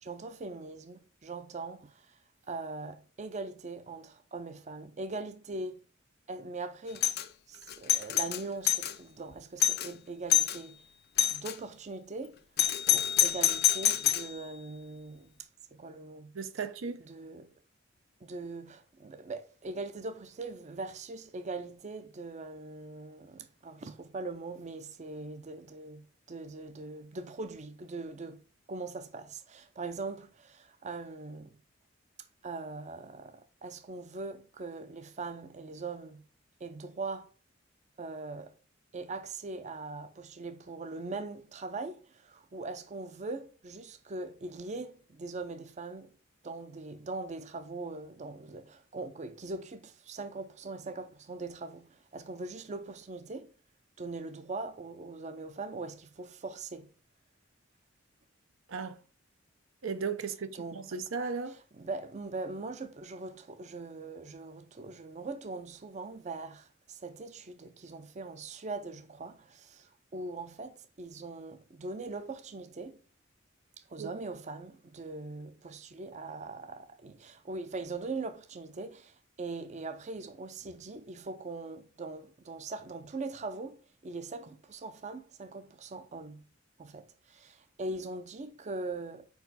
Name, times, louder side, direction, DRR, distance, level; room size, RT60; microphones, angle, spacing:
voice 1, 0.0-2.2 2.5-5.8 6.3-7.1 7.5-10.8 11.3-12.4 12.9-15.3 15.7-16.3 17.1-17.5 18.2-28.4 28.7-31.6 32.4-36.2 36.6-37.3 38.0-38.5 38.9-46.1 46.4-53.5 54.0-56.9 60.5-60.8 61.5-73.0 73.9-86.4 86.8-89.3, right 3 dB, 35° right, 0.5 m, -41 dB
Doorbell, 7.0-7.3 7.7-8.9 9.3-9.4 9.6-9.9 10.3-10.6 11.2-11.5 12.6-14.3, left 12 dB, 55° left, 0.5 m, -26 dB
voice 2, 16.3-17.1 58.7-59.0 59.8-61.6 74.0-74.1, right 5 dB, 80° right, 0.7 m, -36 dB
5.0 x 4.7 x 4.0 m
head